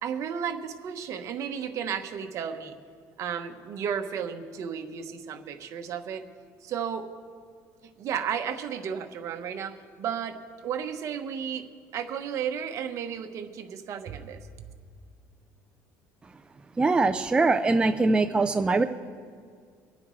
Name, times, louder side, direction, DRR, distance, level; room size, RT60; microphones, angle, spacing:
voice 1, 0.0-2.7 3.2-6.2 6.6-7.1 8.0-10.4 10.6-11.6 11.9-14.4, right 8 dB, 50° right, 6 dB, 1.1 m, -33 dB
voice 2, 16.8-18.8, right 3 dB, 15° right, 7 dB, 0.5 m, -22 dB
24.5 x 9.5 x 3.2 m, 2.1 s
cardioid pair, 125°, 7 cm